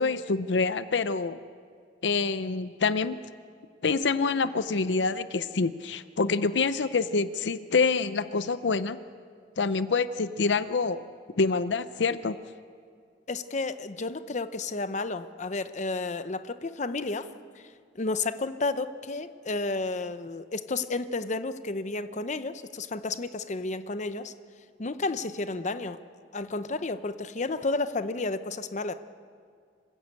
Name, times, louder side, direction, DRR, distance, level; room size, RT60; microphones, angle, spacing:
voice 1, 0.0-1.4 2.0-3.2 3.8-9.0 9.6-11.1 11.3-12.4, left 4 dB, 80° left, 13 dB, 0.6 m, -26 dB
voice 2, 13.3-17.3 17.6-17.7 17.9-24.3 24.8-26.0 26.3-28.9, left 3 dB, 40° left, 11 dB, 0.8 m, -31 dB
26.5 x 15.5 x 8.2 m, 2.1 s
head